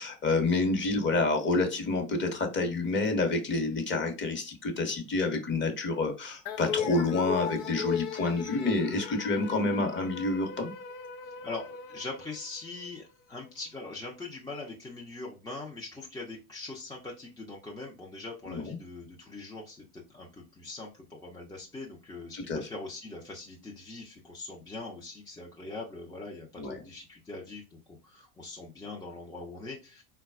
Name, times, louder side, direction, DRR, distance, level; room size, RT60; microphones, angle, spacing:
voice 1, 0.0-10.7 18.5-18.8 22.3-22.6 26.6-26.8, left 3 dB, 25° left, 5 dB, 0.9 m, -28 dB
sound 1, 6.5-13.0, left 8 dB, 65° left, 0.7 m, -37 dB
voice 2, 11.2-30.0, left 3 dB, 10° left, -2 dB, 0.5 m, -42 dB
3.8 x 2.3 x 2.3 m, 0.31 s
hypercardioid pair, 100°, 44 cm